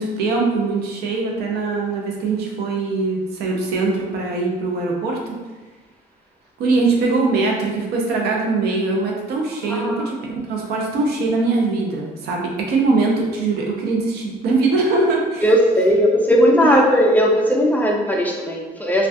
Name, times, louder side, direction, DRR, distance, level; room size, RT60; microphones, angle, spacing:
voice 1, 0.0-5.4 6.6-10.2 10.5-15.5 16.6-16.8, right 3 dB, 70° right, -1 dB, 0.5 m, -21 dB
voice 2, 9.7-10.1 15.4-19.1, equal, 10° left, -1 dB, 0.3 m, -17 dB
2.3 x 2.2 x 2.5 m, 1.2 s
cardioid pair, 110°, 17 cm